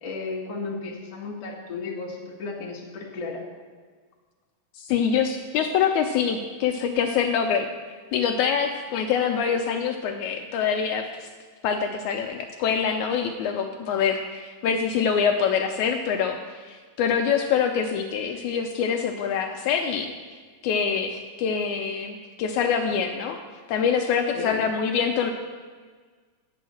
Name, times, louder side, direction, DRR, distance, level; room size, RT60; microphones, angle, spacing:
voice 1, 0.0-3.4 24.3-24.6, left 3 dB, 40° left, -3 dB, 2.3 m, -34 dB
voice 2, 4.8-7.7 8.1-11.3 11.6-20.1 20.6-23.4 23.7-25.3, left 7 dB, 85° left, 4 dB, 1.7 m, -25 dB
8.5 x 6.4 x 7.6 m, 1.5 s
omnidirectional pair, 4.0 m